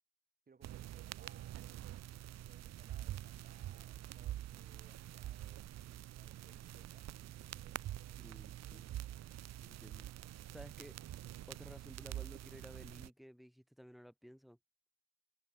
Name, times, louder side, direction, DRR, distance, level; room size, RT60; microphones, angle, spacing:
voice 1, 0.5-8.2 8.7-9.2, right 5 dB, 20° right, 5.6 m, -67 dB
sound 1, 0.6-13.1, right 13 dB, 40° right, 1.0 m, -46 dB
voice 2, 8.2-8.8 9.6-10.9 11.5-14.6, equal, ahead, 7.4 m, -55 dB
hypercardioid pair, 90°, 42 cm